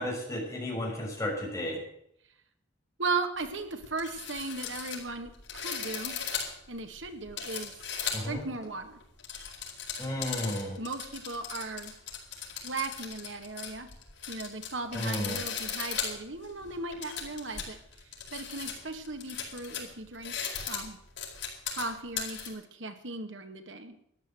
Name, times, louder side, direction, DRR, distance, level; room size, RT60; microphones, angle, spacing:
voice 1, 0.0-1.8 8.1-8.4 10.0-10.8 14.9-15.4, left 1 dB, 15° left, -3 dB, 6.4 m, -33 dB
voice 2, 3.0-6.2 6.7-7.7 8.2-9.0 10.8-11.9 12.6-13.9 14.3-17.8 18.3-20.3 20.7-21.0 21.7-23.9, right 3 dB, 90° right, 7 dB, 2.0 m, -37 dB
sound 1, 3.4-3.5 3.8-8.4 9.0-22.5, left 7 dB, 85° left, 4.7 m, -38 dB
13.5 x 11.0 x 7.9 m, 0.73 s
head